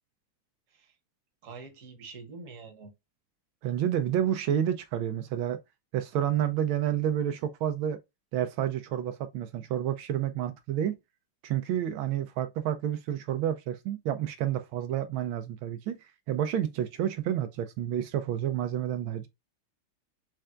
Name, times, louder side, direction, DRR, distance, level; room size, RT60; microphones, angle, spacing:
voice 1, 1.4-2.9, right 4 dB, 45° right, 1.2 m, -45 dB
voice 2, 3.6-5.6 5.9-8.0 8.3-11.0 11.4-16.0 16.3-19.3, right 10 dB, 80° right, 1.4 m, -29 dB
4.5 x 3.3 x 2.4 m
omnidirectional pair, 2.3 m